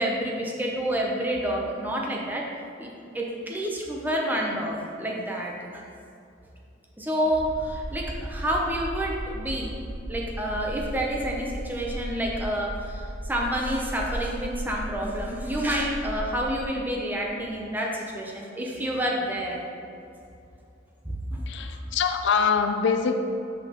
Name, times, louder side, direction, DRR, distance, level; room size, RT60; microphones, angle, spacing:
voice 1, 0.0-2.4 2.8-2.9 3.1-5.9 7.0-9.7 10.1-19.6 21.0-21.7, equal, 10° right, -2 dB, 0.7 m, -29 dB
sound 1, 7.3-16.6, equal, 50° right, 1.2 m, -36 dB
voice 2, 21.5-23.1, left 6 dB, 65° left, 6 dB, 0.4 m, -24 dB
5.8 x 5.8 x 3.0 m, 2.5 s
head